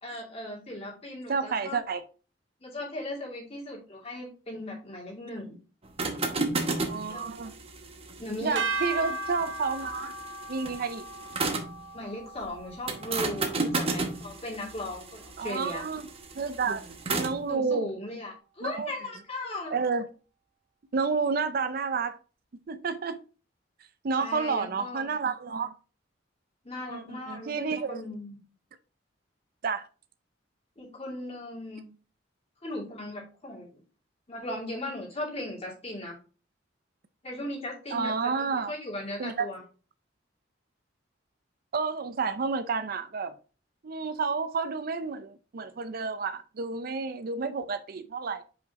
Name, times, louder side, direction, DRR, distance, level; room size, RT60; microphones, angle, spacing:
voice 1, 0.0-1.8 2.6-5.5 7.1-7.5 8.2-8.6 11.9-15.8 17.5-19.7 24.2-25.1 26.6-28.4 30.8-31.9 32.6-33.8 34.3-36.2 37.2-39.6, left 1 dB, 35° left, 2.6 m, -37 dB
voice 2, 1.3-2.0 6.7-7.5 8.4-10.1 10.5-11.1 15.4-16.1 16.4-17.9 18.6-18.9 19.7-20.1 20.9-22.2 22.7-23.2 24.0-25.7 26.9-28.0 29.6-29.9 37.9-38.7 39.2-39.5 41.7-43.3 43.8-48.4, right 5 dB, 50° right, 0.5 m, -30 dB
sound 1, 5.8-11.8 12.9-17.4, right 3 dB, 30° right, 1.0 m, -33 dB
sound 2, 8.6-14.9, right 2 dB, 80° right, 1.0 m, -37 dB
5.4 x 5.2 x 3.6 m
head